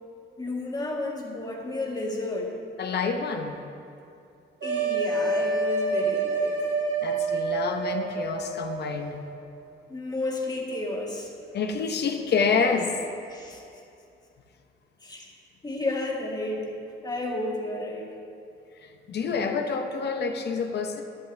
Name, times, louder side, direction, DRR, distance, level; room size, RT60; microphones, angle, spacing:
voice 1, 0.4-2.6 4.6-6.6 9.9-11.3 13.3-13.6 15.0-15.3 15.6-16.7 17.0-18.1, left 2 dB, 20° left, -1 dB, 1.9 m, -32 dB
voice 2, 2.8-3.6 7.0-9.2 11.5-13.0 18.8-21.0, left 5 dB, 55° left, 5 dB, 0.9 m, -28 dB
sound 1, 4.6-9.0, right 3 dB, 70° right, 2.6 m, -27 dB
12.0 x 10.5 x 3.4 m, 2.6 s
cardioid pair, 90°, 20 cm